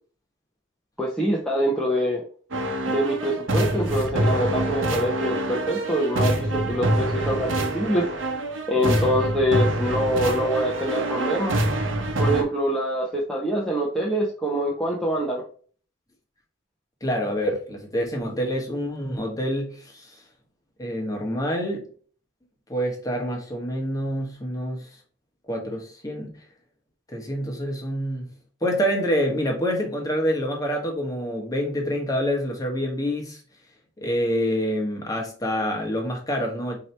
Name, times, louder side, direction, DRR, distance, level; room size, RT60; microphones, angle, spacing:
voice 1, 1.0-2.2 2.9-8.1 8.7-11.6 12.2-15.4, equal, 5° left, -4 dB, 0.7 m, -25 dB
sound 1, 2.5-12.4, right 1 dB, 85° right, 0.9 m, -25 dB
voice 2, 17.0-20.2 20.8-21.8 22.7-24.9 25.5-26.4 27.1-28.3 28.6-33.4 34.0-36.8, equal, 20° left, 0 dB, 1.1 m, -27 dB
4.7 x 2.9 x 3.2 m, 0.43 s
head